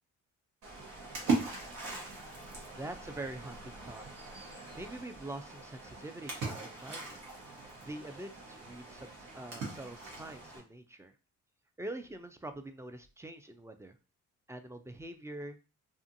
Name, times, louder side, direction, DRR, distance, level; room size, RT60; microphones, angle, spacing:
Splash splatter, 0.6-10.6, right 3 dB, 75° right, 1.0 m, -40 dB
voice 1, 2.8-4.0 4.4-7.2 7.8-11.1 11.8-14.0 14.5-15.6, right 1 dB, 10° right, 7 dB, 0.3 m, -44 dB
2.5 x 2.4 x 2.6 m, 0.33 s
supercardioid pair, 65°, 32 cm